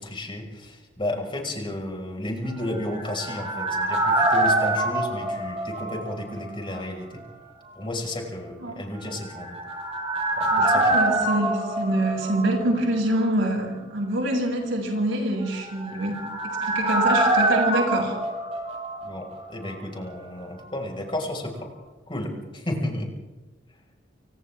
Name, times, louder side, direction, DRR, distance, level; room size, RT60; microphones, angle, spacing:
voice 1, 0.0-7.2 7.8-9.6 10.4-11.0 19.0-21.7 22.1-23.1, left 1 dB, 25° left, 1 dB, 5.7 m, -32 dB
sound 1, 2.6-6.5 6.7-6.8 9.2-12.9 13.2-13.3 15.5-19.4 19.7-19.8, right 1 dB, 35° right, 6.8 m, -25 dB
voice 2, 10.5-18.2, right 1 dB, 85° right, 0 dB, 7.4 m, -26 dB
30.0 x 25.0 x 3.7 m, 1.1 s
head